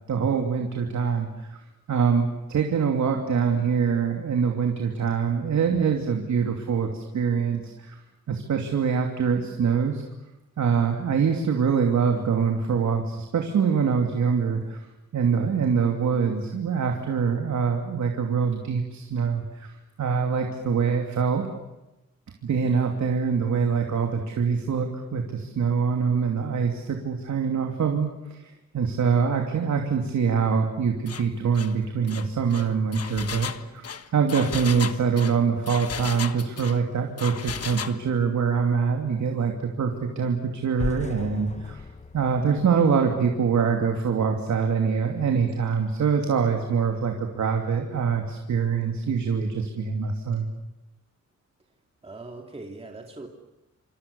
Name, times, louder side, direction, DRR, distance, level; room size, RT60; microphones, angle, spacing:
voice 1, 0.1-1.5 1.9-7.9 8.3-10.0 10.6-14.9 15.1-19.7 20.0-21.5 22.4-41.8 42.1-50.5, right 6 dB, 75° right, 3 dB, 2.9 m, -24 dB
Engine, 31.1-31.3 31.5-31.7 32.1-36.8 37.2-38.0, left 7 dB, 55° left, 1.4 m, -35 dB
sound 1, 40.8-43.8, left 3 dB, 25° left, 1.2 m, -37 dB
voice 2, 52.0-53.3, right 2 dB, 20° right, 2 dB, 2.5 m, -40 dB
27.5 x 27.0 x 7.1 m, 0.97 s
wide cardioid pair, 140°, 29 cm